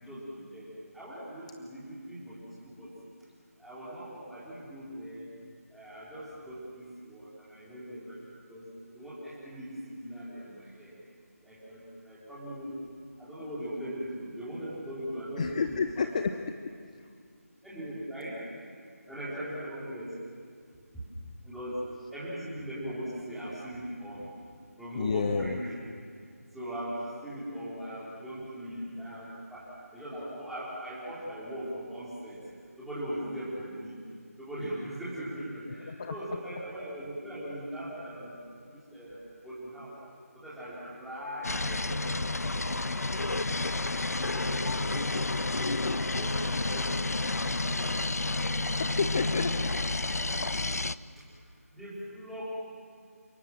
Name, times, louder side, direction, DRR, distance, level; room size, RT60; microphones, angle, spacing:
voice 1, 0.0-2.9 3.6-5.3 5.7-8.2 8.5-8.7 8.9-10.9 11.4-12.8 13.2-15.7 16.0-16.1 17.6-18.4 19.1-20.1 20.9-21.0 21.4-21.8 22.1-24.3 24.8-25.7 26.5-32.4 32.8-34.0 34.4-38.4 38.7-39.9 40.3-43.5 44.0-47.2 47.6-48.0 49.1-49.2 51.2-51.3 51.7-52.4, equal, ahead, -11 dB, 4.0 m, -40 dB
voice 2, 15.4-16.4 17.0-17.1 24.9-25.6 35.9-36.1 48.8-49.7, left 5 dB, 25° left, 9 dB, 0.6 m, -30 dB
sound 1, 41.4-50.9, left 2 dB, 75° left, 0.7 m, -30 dB
28.5 x 19.5 x 7.6 m, 2.2 s
figure-of-eight pair, 165°, 8 cm